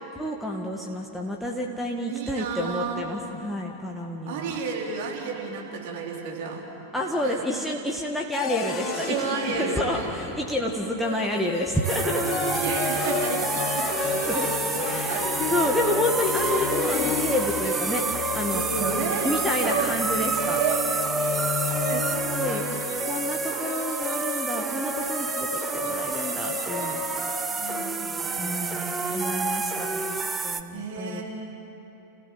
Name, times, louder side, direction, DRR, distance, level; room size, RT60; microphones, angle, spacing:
voice 1, 0.2-4.6 6.9-9.3 9.6-12.3 14.3-14.5 14.8-18.6 19.2-20.6 21.8-22.6 23.1-27.6 28.4-31.2, left 1 dB, ahead, -2 dB, 1.8 m, -30 dB
voice 2, 2.0-3.0 4.3-6.7 7.2-7.4 8.8-10.1 12.1-14.3 15.0-15.5 18.5-19.3 19.6-19.9 20.5-23.1 27.5-29.6 30.7-31.2, right 5 dB, 50° right, -1 dB, 4.1 m, -32 dB
sound 1, 8.3-10.9 12.0-23.1, left 6 dB, 25° left, 1.9 m, -32 dB
sound 2, 11.0-27.4, left 6 dB, 50° left, 1.3 m, -35 dB
sound 3, 11.8-30.6, right 4 dB, 15° right, 1.0 m, -29 dB
29.5 x 16.0 x 8.0 m, 2.9 s
figure-of-eight pair, 90°, 0 cm